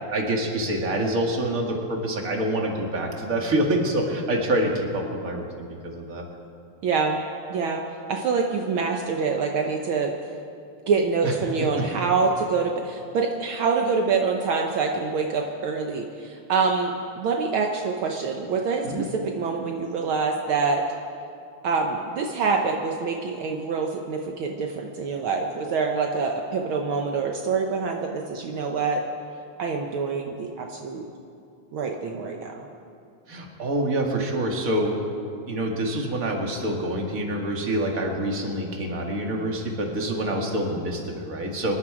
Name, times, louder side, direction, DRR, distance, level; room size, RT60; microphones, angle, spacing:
voice 1, 0.1-6.2 11.2-11.3 18.8-19.1 33.3-35.0 35.5-41.8, right 1 dB, 35° right, 1 dB, 1.6 m, -26 dB
voice 2, 6.8-7.2 7.5-7.8 8.1-10.1 10.9-18.9 19.1-20.8 21.6-29.0 29.6-31.1 31.7-32.7, right 4 dB, 75° right, 2 dB, 1.2 m, -25 dB
24.5 x 11.0 x 4.8 m, 2.5 s
omnidirectional pair, 3.4 m